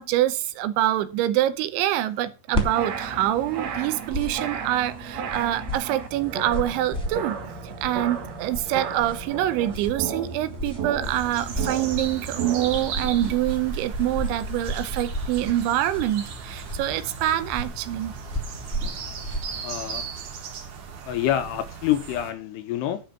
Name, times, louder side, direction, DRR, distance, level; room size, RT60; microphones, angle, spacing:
voice 1, 0.0-7.4 7.8-18.2, right 13 dB, 90° right, 3.2 m, -25 dB
sound 1, 2.5-20.1, equal, ahead, 1.9 m, -35 dB
sound 2, 2.5-13.4, right 6 dB, 75° right, 1.6 m, -34 dB
sound 3, 11.0-22.3, right 6 dB, 60° right, 2.2 m, -37 dB
voice 2, 19.6-20.0 21.1-23.0, left 12 dB, 75° left, 2.8 m, -26 dB
10.5 x 5.2 x 6.6 m
omnidirectional pair, 5.2 m